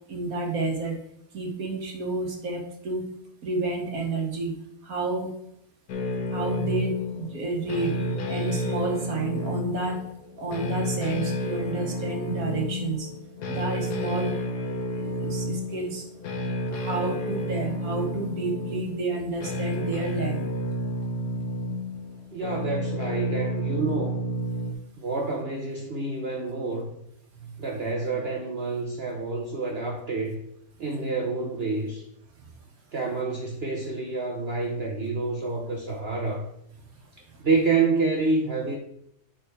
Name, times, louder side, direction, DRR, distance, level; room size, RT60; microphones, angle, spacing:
voice 1, 0.1-1.0 1.3-3.1 3.4-4.6 4.8-5.3 6.3-10.0 10.4-13.1 13.5-14.4 15.0-16.1 16.7-20.5 27.4-27.6 37.3-37.4, right 3 dB, 65° right, 2 dB, 1.8 m, -30 dB
sound 1, 5.9-24.7, left 1 dB, 90° left, 1.6 m, -30 dB
voice 2, 22.3-24.2 25.0-26.9 27.6-30.4 30.8-32.0 32.9-36.4 37.4-38.8, right 3 dB, 45° right, -1 dB, 1.1 m, -28 dB
9.1 x 4.3 x 4.8 m, 0.76 s
omnidirectional pair, 1.7 m